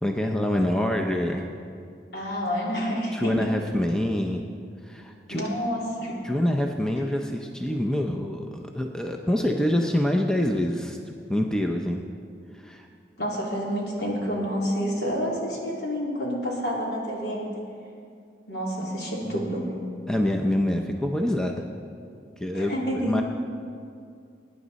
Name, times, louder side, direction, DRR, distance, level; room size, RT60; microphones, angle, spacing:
voice 1, 0.0-1.5 3.1-4.4 4.8-5.5 6.2-12.0 12.5-12.9 19.3-19.5 20.1-21.6 22.4-22.8 23.0-23.2, left 1 dB, 5° left, 2 dB, 0.6 m, -26 dB
voice 2, 2.1-3.5 5.3-6.1 13.2-17.4 18.5-19.7 22.5-23.2, equal, 70° left, -4 dB, 3.1 m, -28 dB
21.0 x 9.8 x 4.1 m, 2.3 s
head